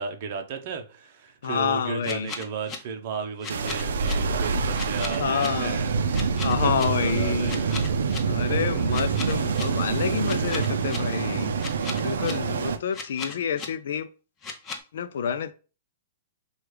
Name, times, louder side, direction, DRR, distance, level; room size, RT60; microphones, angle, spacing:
voice 1, 0.0-6.0 6.6-7.8 8.3-8.4 9.0-9.1 10.0-10.6, right 5 dB, 45° right, 0.7 m, -35 dB
voice 2, 1.4-2.3 5.2-5.9 6.4-7.7 8.2-11.5 12.0-14.1 14.9-15.5, left 7 dB, 70° left, 0.4 m, -28 dB
sound 1, 2.0-2.8 3.4-4.1 4.7-5.5 6.1-6.9 7.5-8.2 8.9-9.6 10.2-11.0 11.6-12.3 12.9-13.7 14.4-14.8, left 4 dB, 20° left, 0.6 m, -35 dB
sound 2, 3.5-12.8, right 5 dB, 80° right, 0.5 m, -26 dB
6.1 x 2.3 x 3.3 m
hypercardioid pair, 165°, 0 cm